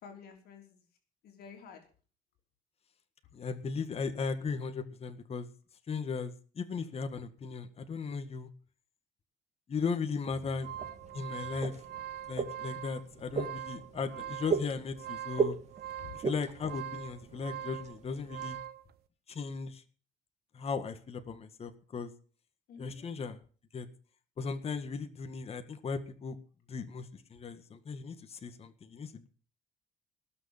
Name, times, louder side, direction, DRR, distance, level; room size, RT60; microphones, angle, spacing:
voice 1, 0.0-0.8 1.2-1.8 16.0-16.2 22.7-23.2, left 7 dB, 65° left, 2 dB, 3.5 m, -50 dB
voice 2, 3.3-5.5 5.9-8.5 9.7-10.7 11.1-11.8 12.3-15.6 16.1-18.6 19.3-19.8 20.5-22.1 22.8-23.4 23.7-23.9 24.4-26.4 26.7-29.3, left 5 dB, 35° left, 8 dB, 1.7 m, -37 dB
sound 1, 10.3-18.6, right 6 dB, 40° right, 2.6 m, -38 dB
sound 2, 10.4-18.8, right 11 dB, 70° right, 1.2 m, -43 dB
19.0 x 6.6 x 7.2 m, 0.40 s
cardioid pair, 110°, 17 cm